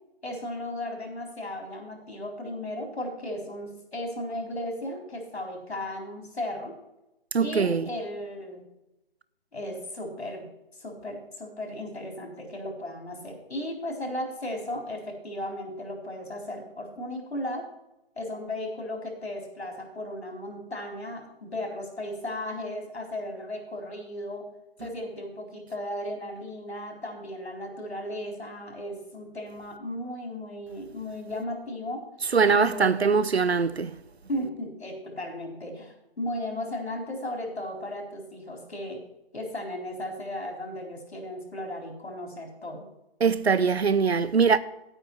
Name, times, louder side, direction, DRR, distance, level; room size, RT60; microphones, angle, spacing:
voice 1, 0.2-6.7 7.4-8.6 9.5-10.5 10.8-17.7 18.2-24.5 24.8-32.0 32.4-33.3 34.3-39.0 39.3-42.9, left 1 dB, 90° left, 3.9 m, -35 dB
voice 2, 7.3-7.9 32.3-34.0 43.2-44.6, right 5 dB, 90° right, 0.8 m, -22 dB
11.0 x 8.9 x 4.6 m
figure-of-eight pair, 155°, 31 cm